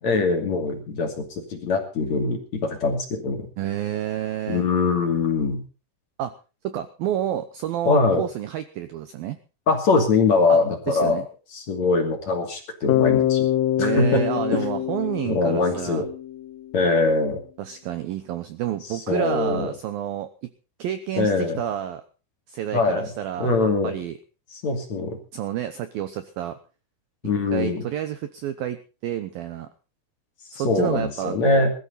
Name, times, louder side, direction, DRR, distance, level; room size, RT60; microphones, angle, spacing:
voice 1, 0.0-3.5 4.5-5.6 7.8-8.2 9.7-11.2 11.5-13.5 13.8-14.2 14.5-14.7 15.3-16.1 16.7-17.4 18.9-19.7 21.2-21.6 22.7-23.1 23.4-23.9 24.5-25.2 27.2-27.9 30.5-31.7, left 3 dB, 45° left, 3 dB, 3.2 m, -22 dB
voice 2, 3.6-4.7 6.2-6.3 6.6-9.4 10.5-10.6 10.9-11.3 13.8-16.1 17.6-20.3 20.8-22.0 22.5-23.6 23.8-24.2 25.3-26.6 27.5-29.7 30.5-31.7, right 11 dB, 90° right, 11 dB, 2.0 m, -29 dB
Bass guitar, 12.9-16.8, left 12 dB, 85° left, 3.6 m, -25 dB
21.0 x 13.5 x 4.1 m, 0.34 s
omnidirectional pair, 5.6 m